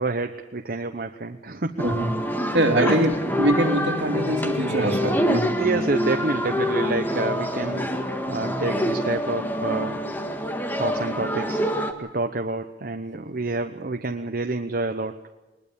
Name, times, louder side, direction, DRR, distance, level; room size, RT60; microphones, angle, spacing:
voice 1, 0.0-2.0 2.8-3.2 5.6-10.0 10.7-11.6 12.0-15.2, right 2 dB, 55° right, 5 dB, 1.0 m, -28 dB
sound 1, 1.8-11.9, equal, 10° left, 1.8 m, -26 dB
voice 2, 2.5-5.6, right 1 dB, 70° right, 1 dB, 3.3 m, -23 dB
21.0 x 21.0 x 7.1 m, 1.1 s
head